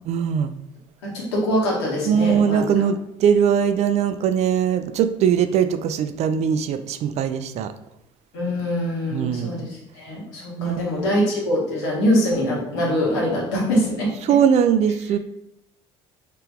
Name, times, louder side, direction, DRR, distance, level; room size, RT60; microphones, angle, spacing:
voice 1, 0.1-0.5 2.0-7.7 9.1-9.5 10.6-10.9 14.2-15.2, right 8 dB, 50° right, 10 dB, 0.4 m, -20 dB
voice 2, 1.0-2.6 8.3-14.1, equal, 85° left, -4 dB, 1.5 m, -23 dB
3.3 x 2.9 x 3.4 m, 0.80 s
hypercardioid pair, 70°, 14 cm